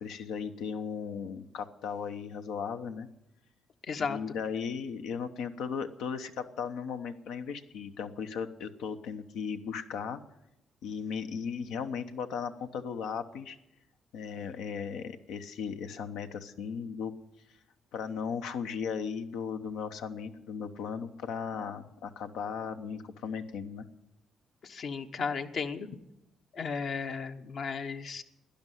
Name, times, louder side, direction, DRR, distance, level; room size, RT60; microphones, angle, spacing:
voice 1, 0.0-3.1 4.0-10.2 10.8-13.6 14.1-17.1 17.9-23.8, left 6 dB, 85° left, 8 dB, 1.0 m, -36 dB
voice 2, 3.8-4.2 24.6-25.9 26.5-28.2, left 5 dB, 60° left, 7 dB, 1.1 m, -34 dB
12.0 x 10.0 x 9.2 m, 0.87 s
cardioid pair, 90°, 0 cm